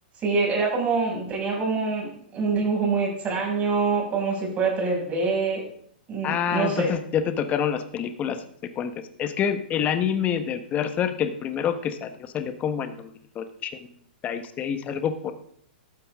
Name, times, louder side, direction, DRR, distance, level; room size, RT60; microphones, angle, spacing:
voice 1, 0.2-5.6 6.1-6.9, right 4 dB, 25° right, -1 dB, 6.3 m, -25 dB
voice 2, 6.2-8.4 8.8-8.9 9.2-13.1 13.3-13.9 14.2-15.3, left 8 dB, 25° left, 9 dB, 1.3 m, -27 dB
14.0 x 12.5 x 3.7 m, 0.64 s
hypercardioid pair, 115°, 5 cm